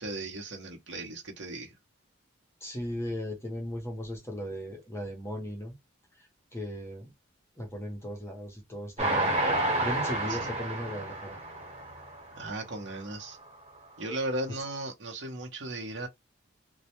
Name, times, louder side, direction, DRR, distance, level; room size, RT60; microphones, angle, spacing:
voice 1, 0.0-1.7 10.3-10.4 12.4-13.4 14.0-16.1, right 2 dB, 65° right, 0.8 m, -36 dB
voice 2, 2.6-5.7 6.2-7.1 7.6-9.3 9.8-11.4, equal, 15° left, 0.6 m, -37 dB
Train, 9.0-12.4 12.9-13.0 13.3-13.4, right 1 dB, 35° right, 1.2 m, -30 dB
2.1 x 2.1 x 2.8 m
head